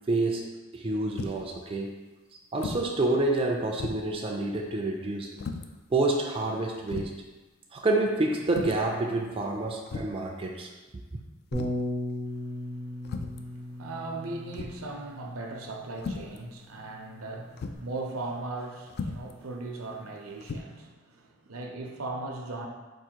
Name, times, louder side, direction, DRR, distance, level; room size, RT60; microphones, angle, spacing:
voice 1, 0.1-1.9 2.5-5.3 5.9-7.1 7.7-10.7, right 2 dB, 25° right, 0 dB, 0.4 m, -28 dB
sound 1, 1.2-1.5 2.6-2.9 3.3-3.4 3.8-4.2 5.4-5.7 6.4-6.5 6.9-7.2 8.5-8.9 9.9-10.3 11.5-11.9 13.0-13.5 14.5-14.9 16.0-16.4 17.6-17.8 18.9-19.3 20.4-20.6, left 4 dB, 50° left, 0.3 m, -36 dB
Bass guitar, 11.5-17.8, left 1 dB, 70° left, 1.4 m, -37 dB
voice 2, 12.7-13.0 13.4-22.7, right 2 dB, 80° right, 2 dB, 0.7 m, -38 dB
4.7 x 2.5 x 4.4 m, 1.2 s
head